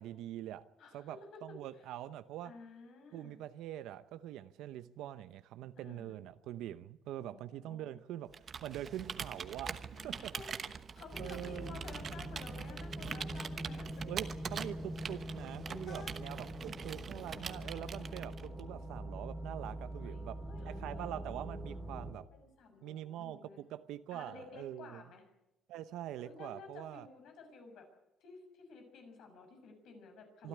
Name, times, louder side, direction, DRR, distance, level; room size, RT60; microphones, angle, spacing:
voice 1, 0.0-0.7 0.9-2.5 3.1-10.3 11.2-11.8 14.1-20.4 20.6-22.3 22.8-25.0 25.7-27.1 30.4-30.5, right 12 dB, 85° right, 0.8 m, -44 dB
voice 2, 0.8-1.4 1.8-1.9 2.4-3.4 5.8-6.1 7.2-7.9 10.0-14.0 15.6-16.1 17.3-18.1 20.0-21.4 22.3-23.6 24.1-25.2 26.2-27.9 28.2-30.5, left 4 dB, 70° left, 6.7 m, -53 dB
Computer keyboard, 8.3-18.6, right 6 dB, 35° right, 1.1 m, -44 dB
sound 1, 11.1-22.1, right 1 dB, ahead, 3.2 m, -44 dB
25.0 x 12.5 x 9.8 m
cardioid pair, 140°, 0 cm